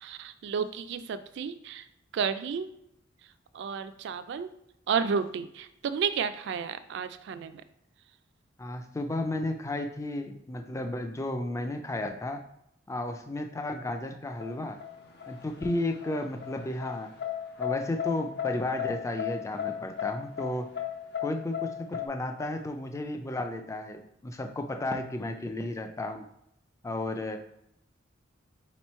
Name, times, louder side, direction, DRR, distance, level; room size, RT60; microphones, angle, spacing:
voice 1, 0.0-1.8 2.1-2.7 3.5-4.5 4.9-7.6, right 6 dB, 60° right, 12 dB, 0.3 m, -32 dB
voice 2, 8.6-12.4 12.9-14.8 15.3-17.1 17.6-20.7 21.2-26.3 26.8-27.4, left 1 dB, 15° left, 6 dB, 0.3 m, -33 dB
sound 1, 14.4-22.1, left 10 dB, 55° left, 0.7 m, -35 dB
4.0 x 3.0 x 4.3 m, 0.79 s
head